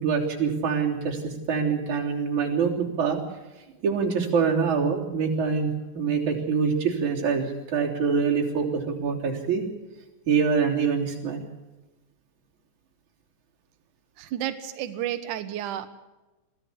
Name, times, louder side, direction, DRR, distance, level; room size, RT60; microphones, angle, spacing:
voice 1, 0.0-3.2 3.8-5.7 5.9-9.6 10.3-11.4, right 6 dB, 45° right, -1 dB, 4.4 m, -25 dB
voice 2, 14.2-15.9, right 11 dB, 75° right, 9 dB, 1.9 m, -31 dB
23.0 x 16.0 x 8.5 m, 1.1 s
omnidirectional pair, 4.9 m